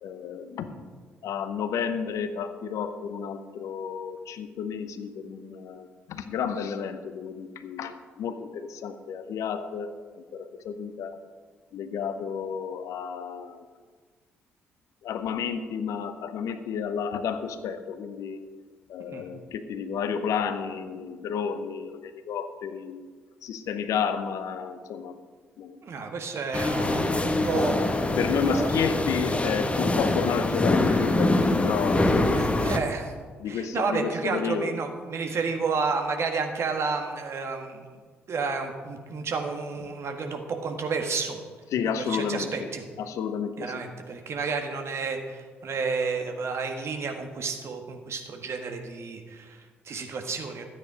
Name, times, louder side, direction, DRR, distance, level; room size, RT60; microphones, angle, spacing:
voice 1, 0.0-0.8 1.2-11.2 11.7-13.7 15.0-18.4 18.9-23.1 23.4-25.2 25.6-25.8 28.2-32.4 33.4-34.8 41.7-42.7 43.0-43.8, left 7 dB, 55° left, 10 dB, 0.9 m, -31 dB
voice 2, 25.8-27.9 28.5-28.7 32.4-33.1 33.5-37.9 38.3-41.4 42.1-42.8 43.6-50.6, right 4 dB, 45° right, 4 dB, 1.7 m, -31 dB
sound 1, 26.5-32.8, left 2 dB, 20° left, 1.3 m, -24 dB
13.0 x 9.0 x 5.1 m, 1.5 s
figure-of-eight pair, 45°, 6 cm